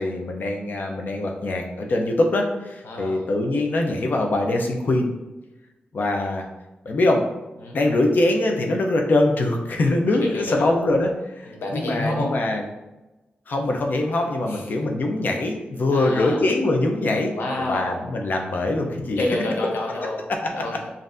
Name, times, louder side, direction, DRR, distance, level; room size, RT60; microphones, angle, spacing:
voice 1, 0.0-5.1 5.9-6.5 6.8-7.2 7.7-12.6 13.5-17.3 17.6-19.2 20.3-20.4 20.7-20.8, left 2 dB, 55° left, 3 dB, 0.6 m, -23 dB
voice 2, 2.8-3.3 7.6-7.8 10.2-10.7 11.4-12.4 14.1-14.9 15.9-16.4 17.3-18.0 19.2-20.2 20.5-20.9, left 2 dB, 85° left, -1 dB, 0.9 m, -29 dB
5.3 x 2.6 x 2.6 m, 1.0 s
wide cardioid pair, 140°, 4 cm